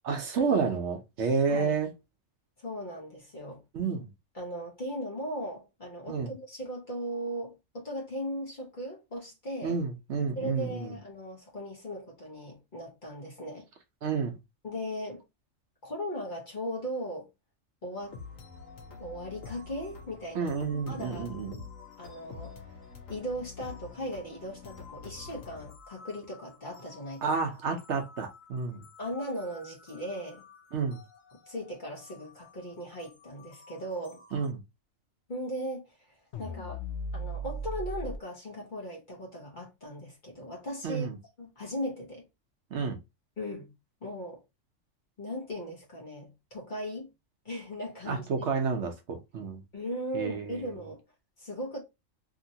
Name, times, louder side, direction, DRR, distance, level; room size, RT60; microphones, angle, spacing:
voice 1, 0.0-1.9 3.7-4.1 6.1-6.3 9.6-11.0 14.0-14.4 20.3-21.6 27.2-28.9 30.7-31.0 34.3-34.6 40.8-41.2 42.7-43.0 48.1-49.6 50.1-50.7, right 5 dB, 70° right, 0.9 m, -30 dB
voice 2, 2.6-3.6 4.3-9.8 10.4-13.7 14.6-15.2 15.8-17.3 17.8-18.2 19.0-20.6 20.9-21.3 22.0-22.7 23.1-27.3 29.0-30.4 31.5-34.2 35.3-35.9 36.4-36.8 37.1-41.1 41.4-42.3 43.4-43.7 44.0-44.4 45.2-47.1 47.4-48.5 49.7-51.0 51.4-51.8, equal, 40° left, 1.0 m, -38 dB
sound 1, 17.9-34.5, left 5 dB, 85° left, 1.2 m, -49 dB
sound 2, 36.3-38.2, equal, 70° left, 0.8 m, -36 dB
2.9 x 2.8 x 2.7 m
omnidirectional pair, 1.3 m